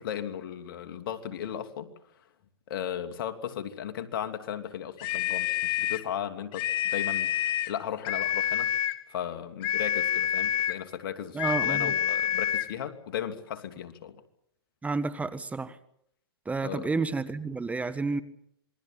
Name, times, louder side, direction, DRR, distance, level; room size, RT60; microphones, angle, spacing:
voice 1, 0.0-1.9 2.7-6.7 6.9-8.7 9.1-14.2 16.6-16.9, left 9 dB, 60° left, 2.8 m, -36 dB
sound 1, 5.0-6.1 6.5-7.8 8.0-9.0 9.6-10.8 11.4-12.7, left 11 dB, 40° left, 1.5 m, -28 dB
voice 2, 11.3-11.9 14.8-15.8 16.4-18.2, right 3 dB, 10° right, 1.4 m, -30 dB
27.5 x 22.5 x 7.5 m
hypercardioid pair, 115°, 13 cm